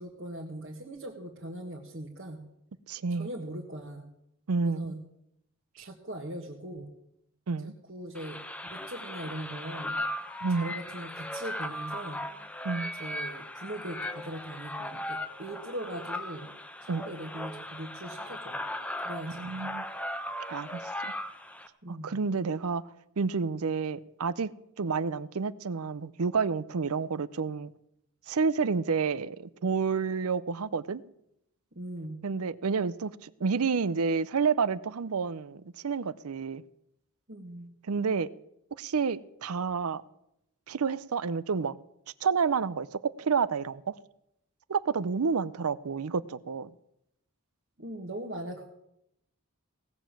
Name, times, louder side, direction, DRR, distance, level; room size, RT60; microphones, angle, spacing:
voice 1, 0.0-2.4 3.2-4.1 4.6-5.0 5.8-6.9 7.9-8.4 8.7-10.0 10.5-12.3 13.0-16.5 16.8-18.6 19.0-19.7 21.8-22.2 31.8-32.2 37.3-37.7 47.8-48.6, right 1 dB, 55° right, 1.6 m, -40 dB
voice 2, 2.9-3.3 4.5-4.9 5.8-5.9 7.5-7.8 10.4-10.8 12.6-12.9 16.9-17.0 19.3-19.8 20.5-21.1 21.9-24.5 24.8-27.7 28.3-31.0 32.2-36.6 37.9-38.3 38.8-40.0 40.7-41.8 42.2-44.0 44.7-46.7, right 5 dB, 90° right, 0.6 m, -29 dB
sound 1, 8.1-21.7, left 1 dB, 5° left, 0.6 m, -38 dB
17.5 x 7.2 x 7.5 m
head